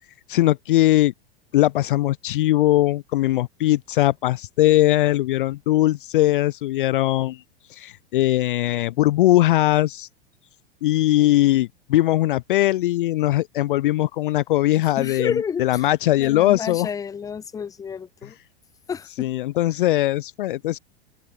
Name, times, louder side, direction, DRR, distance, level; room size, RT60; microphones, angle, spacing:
voice 1, 0.3-1.1 1.5-7.4 7.7-10.1 10.8-16.9 19.2-20.8, left 15 dB, 55° left, 0.5 m, -20 dB
voice 2, 15.0-15.9 16.2-18.4 18.9-19.3, left 6 dB, 10° left, 0.7 m, -30 dB
open air
figure-of-eight pair, 90°, 31 cm